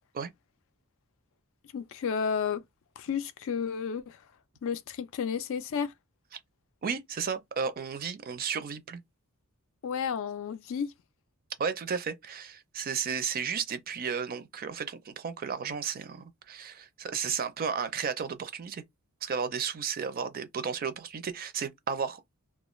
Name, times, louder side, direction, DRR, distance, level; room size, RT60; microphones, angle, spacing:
voice 1, 1.7-2.6 3.0-4.2 4.6-5.9 9.8-10.9, left 6 dB, 65° left, 0.4 m, -32 dB
voice 2, 6.8-9.0 11.6-18.8 19.2-22.2, right 6 dB, 45° right, 0.4 m, -33 dB
2.4 x 2.3 x 3.0 m
head